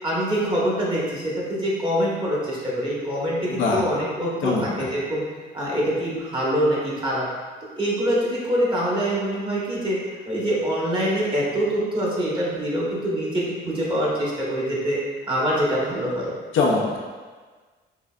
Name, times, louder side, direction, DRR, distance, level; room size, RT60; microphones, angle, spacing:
voice 1, 0.0-5.2 5.5-7.3 7.8-10.0 10.2-15.0 15.3-16.3, equal, 25° right, -6 dB, 1.4 m, -24 dB
voice 2, 3.5-3.8 4.4-4.9 16.5-17.0, left 3 dB, 80° left, -2 dB, 0.8 m, -22 dB
5.5 x 2.6 x 2.4 m, 1.4 s
cardioid pair, 90°, 20 cm